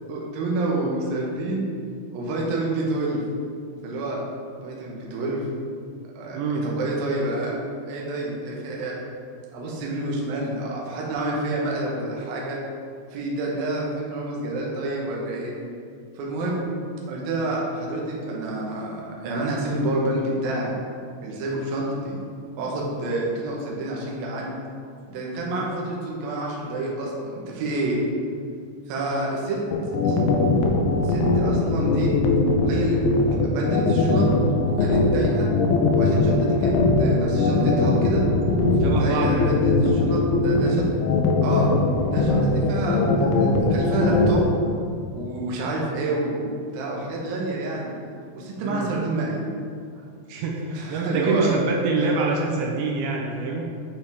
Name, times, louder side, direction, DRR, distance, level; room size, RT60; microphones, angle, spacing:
voice 1, 0.1-1.7 2.1-3.2 3.8-4.2 4.6-5.4 6.2-7.6 7.9-9.0 9.5-12.6 13.1-15.5 16.2-16.7 17.1-20.7 21.2-22.2 22.6-24.5 25.1-28.0 28.9-29.6 30.0-30.2 31.0-32.1 32.7-33.0 33.4-34.3 34.8-35.5 36.0-38.2 39.0-40.9 41.4-41.7 42.1-44.5 45.1-47.9 48.3-49.5 50.7-51.5 52.0-52.1, right 2 dB, 65° right, -3 dB, 2.6 m, -28 dB
voice 2, 6.3-6.7 38.8-39.6 48.6-48.9 50.3-53.6, right 3 dB, 85° right, -1 dB, 2.9 m, -25 dB
sound 1, 29.7-44.4, left 3 dB, 85° left, 2.4 m, -20 dB
9.4 x 5.3 x 3.5 m, 2.3 s
omnidirectional pair, 5.2 m